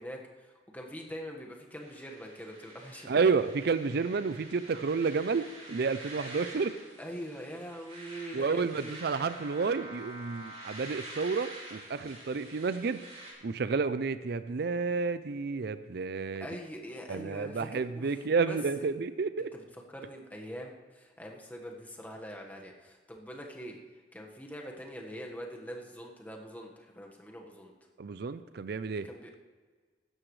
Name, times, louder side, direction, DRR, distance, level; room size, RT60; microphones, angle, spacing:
voice 1, 0.0-3.4 7.0-8.9 16.4-18.2 18.5-19.0 19.5-19.6 19.9-23.8 24.1-27.7 28.9-29.4, equal, 10° left, 0 dB, 1.5 m, -43 dB
sound 1, 1.8-13.3, right 1 dB, 35° right, 3.9 m, -47 dB
voice 2, 3.1-6.7 8.3-13.0 13.4-16.5 17.1-19.5 28.0-29.1, right 4 dB, 65° right, 13 dB, 0.5 m, -30 dB
16.5 x 12.5 x 3.3 m, 1.5 s
head